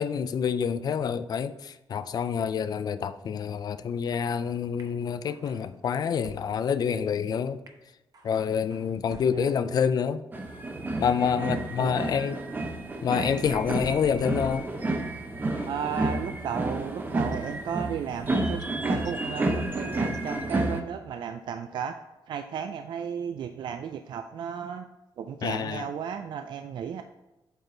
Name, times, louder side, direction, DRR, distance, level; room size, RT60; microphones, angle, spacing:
voice 1, 0.0-7.6 8.2-10.2 11.0-12.4 13.0-14.7 25.4-25.9, left 7 dB, 50° left, 0.4 m, -27 dB
sound 1, 4.8-4.9 5.3-6.4 6.9-7.0 7.7-7.8 8.1-9.4, right 3 dB, 45° right, 1.0 m, -50 dB
sound 2, 10.3-20.8, right 2 dB, 20° right, 0.8 m, -30 dB
voice 2, 15.7-22.0 22.3-24.9 25.2-27.0, right 7 dB, 65° right, 0.4 m, -34 dB
7.9 x 4.5 x 3.9 m
cardioid pair, 135°, 9 cm